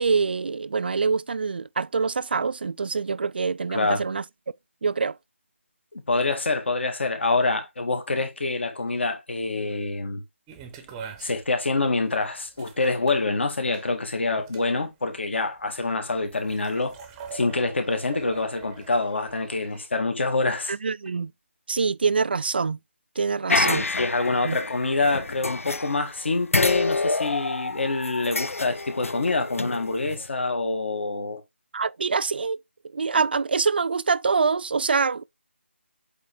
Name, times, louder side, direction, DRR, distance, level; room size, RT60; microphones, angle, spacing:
voice 1, 0.0-4.2 4.8-5.2 20.7-21.3 21.7-22.8 23.2-23.9 24.4-24.6 31.7-32.6 32.9-35.2, right 5 dB, 45° right, 0.4 m, -25 dB
voice 2, 3.7-4.0 5.9-10.2 11.2-16.9 17.3-20.7 23.6-31.4, left 3 dB, 60° left, 1.9 m, -26 dB
sound 1, 10.5-19.9, right 6 dB, 10° right, 0.8 m, -44 dB
sound 2, 23.5-26.2 26.5-30.3, left 3 dB, 85° left, 0.3 m, -28 dB
8.0 x 3.4 x 3.5 m
figure-of-eight pair, 155°, 7 cm